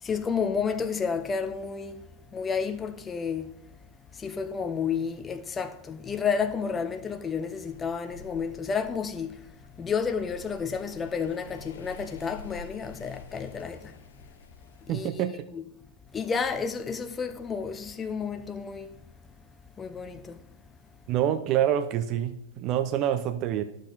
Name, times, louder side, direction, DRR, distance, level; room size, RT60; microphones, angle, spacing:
voice 1, 0.0-2.0 2.3-3.5 4.1-9.5 9.8-14.0 14.9-15.2 15.5-15.6 16.1-18.9 19.8-20.4, left 6 dB, 20° left, 0.8 m, -31 dB
sound 1, 7.6-15.2, left 4 dB, 80° left, 0.9 m, -49 dB
voice 2, 14.9-15.5 21.1-23.6, right 10 dB, 45° right, 0.6 m, -26 dB
11.5 x 6.4 x 4.0 m
hypercardioid pair, 100°, 0 cm